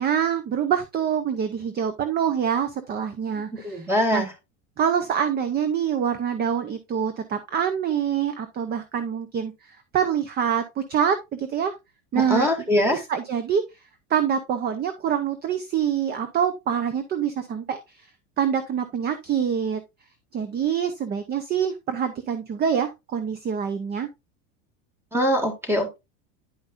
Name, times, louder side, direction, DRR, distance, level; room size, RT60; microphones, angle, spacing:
voice 1, 0.0-4.3 4.8-11.7 12.1-12.5 12.7-13.6 14.1-17.8 18.4-19.8 20.3-24.1, right 8 dB, 25° right, 11 dB, 0.7 m, -25 dB
voice 2, 3.5-4.3 12.2-13.0 25.1-26.0, left 1 dB, 5° right, 5 dB, 2.0 m, -23 dB
10.5 x 5.3 x 2.5 m, 0.23 s
supercardioid pair, 130°, 39 cm